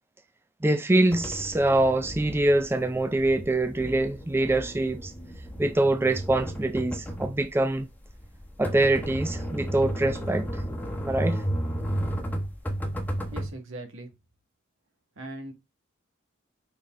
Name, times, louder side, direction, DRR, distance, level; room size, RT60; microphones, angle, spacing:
voice 1, 0.6-5.1 5.6-7.9 8.6-10.6 11.0-11.4, right 2 dB, 10° right, 0.4 m, -24 dB
sound 1, 1.1-13.5, equal, 10° left, 1.1 m, -33 dB
voice 2, 13.3-14.1 15.2-15.5, right 1 dB, 80° right, 1.9 m, -39 dB
5.3 x 4.8 x 3.7 m
head